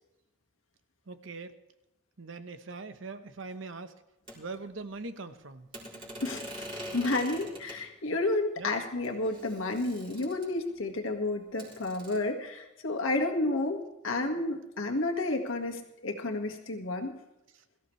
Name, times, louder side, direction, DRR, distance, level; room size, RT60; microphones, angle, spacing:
voice 1, 1.1-1.6 2.2-4.0 4.3-5.7 8.6-8.7 17.5-17.6, right 3 dB, 65° right, 9 dB, 1.0 m, -41 dB
sound 1, 4.3-4.4 5.7-7.8 8.7-8.8 9.0-10.7 11.6-12.2, equal, 25° right, 4.4 m, -43 dB
voice 2, 6.2-6.7 6.9-17.1, left 2 dB, 75° left, 2 dB, 1.8 m, -31 dB
22.0 x 14.0 x 3.3 m, 0.92 s
head